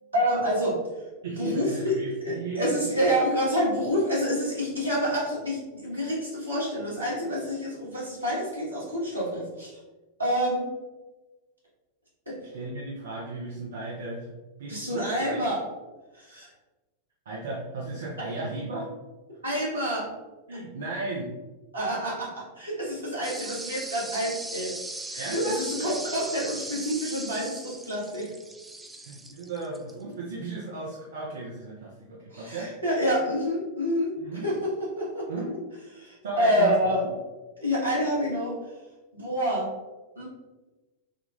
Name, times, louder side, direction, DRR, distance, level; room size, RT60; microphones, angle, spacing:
voice 1, 0.1-0.8 1.4-2.0 2.2-9.8 10.2-10.7 12.3-12.4 14.7-15.6 16.1-16.5 18.2-18.3 19.4-20.1 21.7-24.7 25.1-28.3 32.3-34.1 34.4-35.3 36.0-37.0 37.6-38.6 39.1-39.7 40.1-40.3, equal, 80° right, -7 dB, 1.5 m, -27 dB
voice 2, 1.2-2.9 12.5-14.3 14.6-15.5 17.3-18.9 20.5-21.3 25.2-25.6 29.0-32.7 34.2-34.5 35.3-35.6 36.2-37.1, right 2 dB, 65° right, -4 dB, 0.6 m, -35 dB
sound 1, 23.2-29.9, right 2 dB, 5° right, 0.3 m, -38 dB
3.6 x 2.3 x 3.6 m, 1.2 s
figure-of-eight pair, 90°, 0 cm